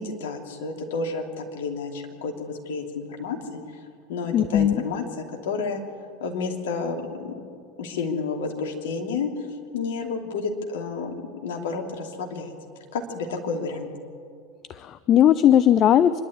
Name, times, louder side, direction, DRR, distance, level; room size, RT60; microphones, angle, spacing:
voice 1, 0.0-3.4 4.1-5.8 6.2-7.3 7.8-9.3 9.7-11.1 11.4-12.5 12.9-13.9, left 4 dB, 65° left, 2 dB, 2.8 m, -30 dB
voice 2, 4.3-4.8 14.7-16.2, left 10 dB, 40° left, 14 dB, 0.6 m, -18 dB
25.5 x 11.5 x 8.7 m, 2.3 s
figure-of-eight pair, 80°, 0 cm